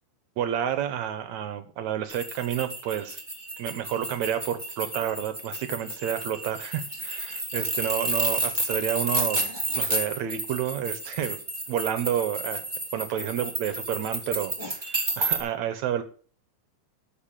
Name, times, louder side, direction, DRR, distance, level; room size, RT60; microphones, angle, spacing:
voice 1, 0.4-3.2 3.6-11.4 11.7-12.6 12.9-16.0, right 10 dB, 70° right, 11 dB, 1.9 m, -30 dB
sound 1, 2.1-15.4, right 2 dB, 15° right, 1.9 m, -31 dB
13.0 x 4.6 x 7.3 m, 0.43 s
omnidirectional pair, 4.0 m